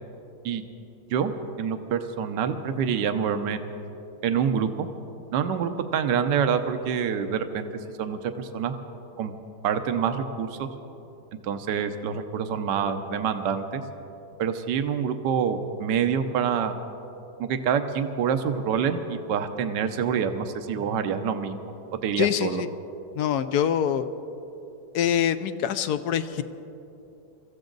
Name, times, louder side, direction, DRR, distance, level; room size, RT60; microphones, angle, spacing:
voice 1, 1.6-3.6 4.2-4.9 5.3-7.7 8.0-8.7 9.2-9.3 9.6-10.7 11.4-13.8 14.4-16.8 17.4-21.5 22.0-22.6, right 7 dB, 75° right, 8 dB, 1.5 m, -26 dB
voice 2, 22.2-22.7 23.2-24.1 24.9-26.4, left 9 dB, 70° left, 12 dB, 1.0 m, -24 dB
24.5 x 15.0 x 3.9 m, 2.9 s
omnidirectional pair, 2.0 m